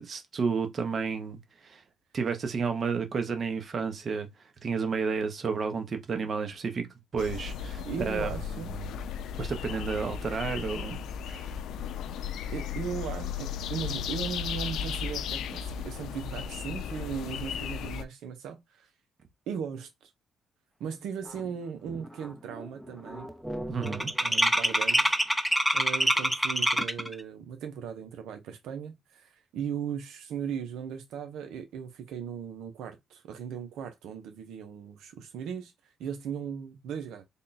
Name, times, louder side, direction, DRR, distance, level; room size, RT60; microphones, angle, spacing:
voice 1, 0.0-1.8 2.1-4.3 4.6-6.9 7.1-9.0 9.4-11.0 11.2-11.5 23.7-24.1, right 5 dB, 45° right, 0.9 m, -31 dB
sound 1, 7.2-18.0, left 7 dB, 80° left, 0.4 m, -35 dB
voice 2, 7.8-8.7 12.5-18.9 19.5-20.1 20.8-23.3 24.2-25.2 25.7-35.7 36.0-37.2, right 7 dB, 85° right, 0.7 m, -37 dB
sound 2, 21.5-21.6 21.9-22.3 22.5-27.1, equal, 5° right, 0.6 m, -26 dB
3.5 x 2.3 x 4.0 m
cardioid pair, 90°, 0 cm